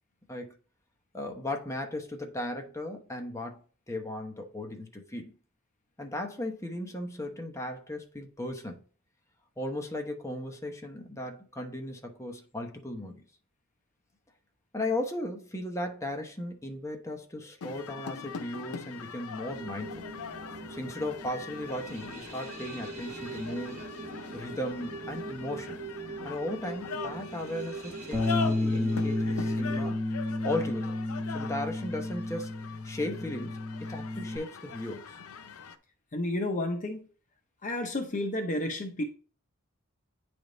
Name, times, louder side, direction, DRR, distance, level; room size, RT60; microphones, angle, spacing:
voice 1, 1.1-3.6 3.9-5.3 6.0-8.8 9.6-13.2 14.7-20.1 20.7-23.9 24.3-25.8 26.2-30.0 30.4-31.0 31.3-32.5 32.8-35.1, left 1 dB, 15° left, 1.0 m, -36 dB
sound 1, 17.6-35.8, left 6 dB, 85° left, 0.6 m, -42 dB
sound 2, 19.5-29.9, right 3 dB, 35° right, 1.7 m, -42 dB
Bass guitar, 28.1-34.4, left 2 dB, 10° right, 1.4 m, -31 dB
voice 2, 36.1-37.1 37.6-39.0, left 1 dB, 35° left, 0.7 m, -31 dB
9.3 x 3.5 x 3.9 m
head